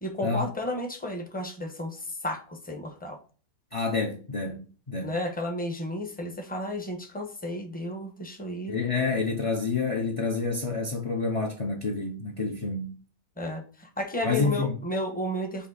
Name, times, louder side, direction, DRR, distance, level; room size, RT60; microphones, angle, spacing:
voice 1, 0.0-3.2 5.0-8.8 13.4-15.7, left 1 dB, 5° left, 0.9 m, -33 dB
voice 2, 3.7-4.6 4.9-5.1 8.7-12.9 14.2-14.8, left 4 dB, 30° left, 0.7 m, -28 dB
8.5 x 3.0 x 4.0 m
omnidirectional pair, 1.6 m